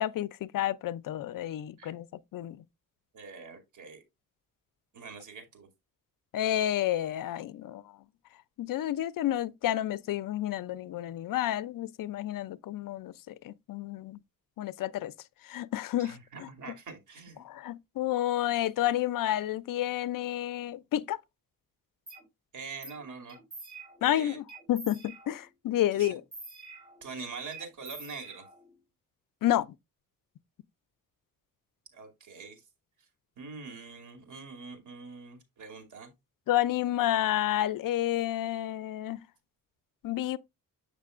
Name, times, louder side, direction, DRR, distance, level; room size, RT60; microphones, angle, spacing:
voice 1, 0.0-2.1 2.3-2.6 6.3-7.8 8.6-14.2 14.6-15.1 15.4-16.5 17.4-21.2 24.0-26.2 29.4-29.7 36.5-39.2 40.0-40.4, left 13 dB, 75° left, 0.5 m, -30 dB
voice 2, 3.1-4.0 4.9-5.7 16.0-17.4 22.5-23.4 24.0-24.4 25.9-26.2 27.0-28.4 31.9-32.6 33.4-36.1, right 4 dB, 60° right, 2.5 m, -44 dB
sound 1, 22.1-22.2 22.8-23.0 23.3-24.1 24.5-25.5 26.0-27.1 27.5-28.8, right 3 dB, 15° right, 3.6 m, -47 dB
7.4 x 6.6 x 2.4 m
wide cardioid pair, 125°, 34 cm